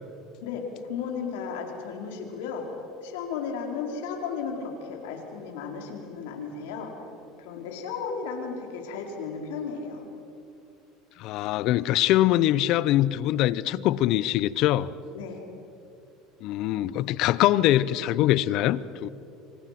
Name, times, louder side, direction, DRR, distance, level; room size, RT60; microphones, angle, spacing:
voice 1, 0.4-6.9 7.4-10.1 15.1-15.5, left 5 dB, 85° left, 4.6 m, -34 dB
voice 2, 11.2-14.9 16.4-19.1, left 14 dB, 65° left, 0.8 m, -23 dB
28.5 x 25.5 x 6.0 m
supercardioid pair, 110°, 0 cm